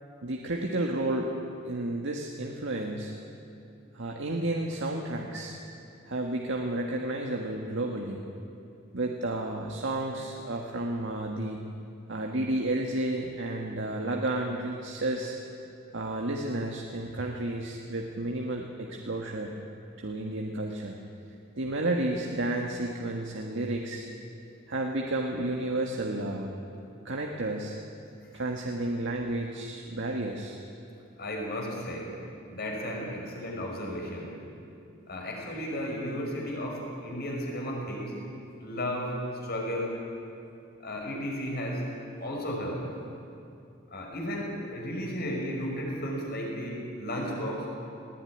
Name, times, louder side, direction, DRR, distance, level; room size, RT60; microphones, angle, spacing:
voice 1, 0.2-1.3 1.6-3.1 3.9-5.6 6.0-8.2 8.9-11.6 12.1-15.4 15.9-19.6 20.0-21.0 21.6-24.1 24.7-26.5 27.0-27.8 28.3-30.6, right 1 dB, 65° right, 1 dB, 1.6 m, -31 dB
voice 2, 31.2-32.1 32.5-34.4 35.1-38.2 38.6-40.0 40.8-41.9 42.2-42.9 43.9-47.8, equal, 50° left, -1 dB, 5.7 m, -34 dB
19.5 x 18.0 x 9.8 m, 2.6 s
head